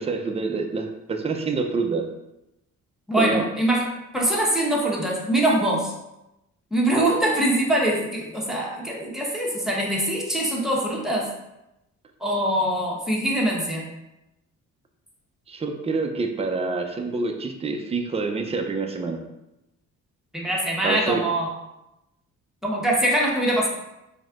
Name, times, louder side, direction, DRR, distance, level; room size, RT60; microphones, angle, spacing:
voice 1, 0.0-2.0 3.2-3.4 15.5-19.2 20.8-21.2, right 4 dB, 20° right, 4 dB, 0.5 m, -27 dB
voice 2, 3.1-5.9 6.7-11.3 12.2-13.8 20.3-21.5 22.6-23.7, right 1 dB, ahead, -4 dB, 1.1 m, -23 dB
4.2 x 3.6 x 2.5 m, 0.91 s
cardioid pair, 90°, 30 cm